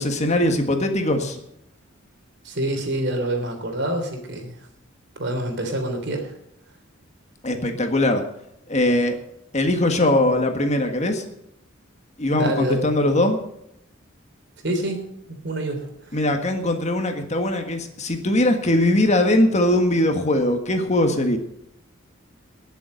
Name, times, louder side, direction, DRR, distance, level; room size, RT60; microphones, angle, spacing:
voice 1, 0.0-1.4 7.4-8.2 8.7-9.2 9.5-11.2 12.2-13.4 16.1-21.4, left 1 dB, 35° left, 5 dB, 1.6 m, -21 dB
voice 2, 2.4-4.5 5.2-6.3 12.3-12.8 14.6-15.0 15.4-16.2, right 1 dB, 60° right, 4 dB, 3.3 m, -26 dB
20.0 x 7.2 x 6.5 m, 0.77 s
head